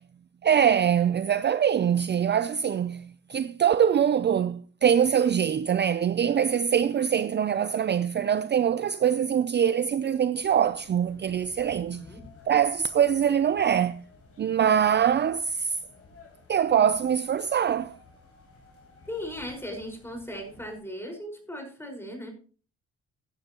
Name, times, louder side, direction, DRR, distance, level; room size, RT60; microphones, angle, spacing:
voice 1, 0.4-12.0 12.5-14.0 14.4-15.8 16.5-18.0, right 8 dB, 35° right, 0.5 m, -23 dB
sound 1, 10.3-20.8, left 4 dB, 50° left, 5.5 m, -54 dB
voice 2, 11.8-12.2 19.1-22.3, equal, 10° left, 4.8 m, -37 dB
15.5 x 10.5 x 2.9 m
cardioid pair, 90°, 30 cm